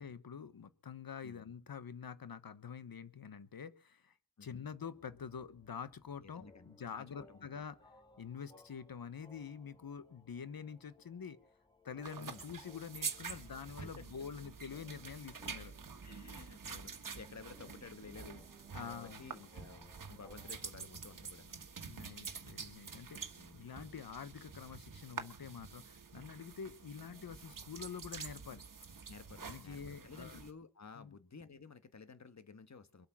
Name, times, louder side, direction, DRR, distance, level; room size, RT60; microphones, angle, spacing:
voice 1, 0.0-4.1 4.4-7.8 8.2-11.4 11.8-15.7 17.6-17.7 18.7-19.3 21.8-29.0 29.4-30.4 31.0-31.2, left 7 dB, 75° left, 14 dB, 1.3 m, -47 dB
voice 2, 4.4-4.7 6.2-7.5 12.2-12.4 13.3-13.5 13.8-14.1 16.0-21.5 23.3-23.7 29.1-33.1, left 5 dB, 50° left, 11 dB, 1.5 m, -54 dB
sound 1, 4.9-20.7, left 1 dB, 10° left, 2.0 m, -64 dB
sound 2, 12.0-30.5, right 5 dB, 65° right, 1.6 m, -48 dB
23.5 x 8.5 x 6.1 m, 0.39 s
wide cardioid pair, 110°, 35 cm